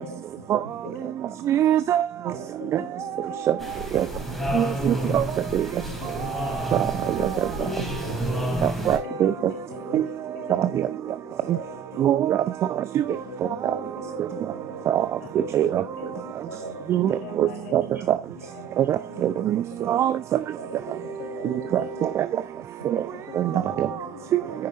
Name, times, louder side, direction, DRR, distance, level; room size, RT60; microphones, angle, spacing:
voice 1, 0.0-1.5 2.6-3.8 4.1-5.1 5.8-8.0 8.9-11.3 11.6-12.4 13.1-14.5 15.2-16.5 17.1-18.1 18.3-19.8 20.9-22.1 23.0-24.7, left 5 dB, 50° left, 3.2 m, -42 dB
voice 2, 1.5-2.0 2.7-2.8 3.5-3.6 3.9-4.1 4.5-5.2 5.5-5.7 6.7-7.3 8.6-9.3 9.9-10.0 10.5-10.9 11.5-11.6 12.0-12.4 12.9-13.0 14.9-15.1 15.5-15.8 16.9-17.8 18.1-18.2 18.8-20.4 21.7-22.3 22.9-23.0 23.4-23.5 23.8-23.9 24.3-24.4, right 11 dB, 30° right, 0.4 m, -22 dB
sound 1, 3.6-9.0, equal, ahead, 3.0 m, -30 dB
voice 3, 4.5-5.0 7.6-8.7 9.7-10.0 11.5-11.6 11.9-12.0 14.5-14.8 16.5-17.0 17.8-18.0 18.6-18.7 19.0-19.1 20.6-20.8 21.0-21.6 22.5-22.9 24.4-24.5, right 2 dB, 80° right, 4.1 m, -40 dB
9.9 x 8.7 x 2.6 m
figure-of-eight pair, 80°, 10 cm